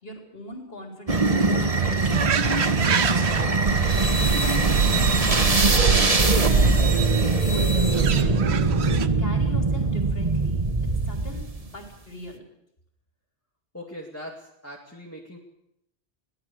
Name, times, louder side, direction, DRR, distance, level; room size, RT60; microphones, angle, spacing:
voice 1, 0.0-4.5 5.2-6.6 7.1-8.4 8.7-12.4, equal, 65° left, 2 dB, 4.1 m, -41 dB
sound 1, 1.1-11.7, right 3 dB, 35° right, 1.4 m, -22 dB
sound 2, 2.1-9.1, right 6 dB, 85° right, 1.2 m, -26 dB
voice 2, 13.7-15.4, equal, 15° left, -2 dB, 2.5 m, -40 dB
22.5 x 17.5 x 6.7 m, 0.79 s
omnidirectional pair, 1.1 m